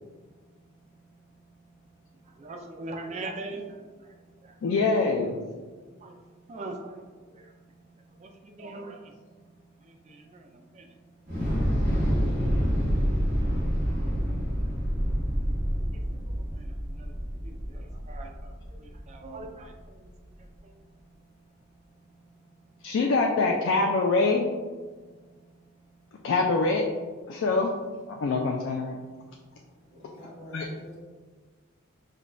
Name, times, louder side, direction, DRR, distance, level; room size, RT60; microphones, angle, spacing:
voice 1, 2.3-4.1 4.4-4.6 6.0-6.2 6.5-7.5 8.2-9.2 9.8-10.9 16.3-17.1 17.4-20.1 20.6-20.7, right 2 dB, 30° right, 3 dB, 0.3 m, -42 dB
voice 2, 4.6-5.4 22.8-24.5 26.2-26.8 27.3-27.7 28.1-29.0 30.5-30.7, left 3 dB, 60° left, 1 dB, 0.3 m, -24 dB
Thunder / Explosion, 11.3-19.5, equal, 50° right, 1.4 m, -27 dB
voice 3, 29.9-31.0, equal, 85° left, -6 dB, 1.5 m, -45 dB
5.0 x 2.2 x 2.5 m, 1.4 s
head